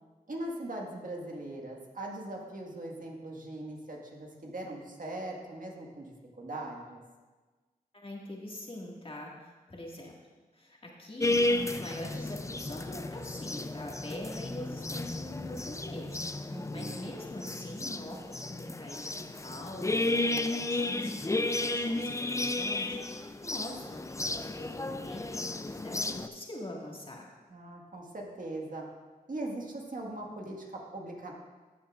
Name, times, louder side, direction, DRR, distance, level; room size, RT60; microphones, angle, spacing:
voice 1, 0.3-7.0 16.5-17.1 27.5-28.9 29.3-31.3, right 1 dB, 55° right, 0 dB, 1.7 m, -40 dB
voice 2, 7.9-10.1 10.5-27.3, left 1 dB, 35° left, -2 dB, 1.9 m, -43 dB
sound 1, 11.2-26.3, left 2 dB, 20° left, 0.4 m, -33 dB
13.0 x 7.2 x 2.5 m, 1.3 s
cardioid pair, 45°, 16 cm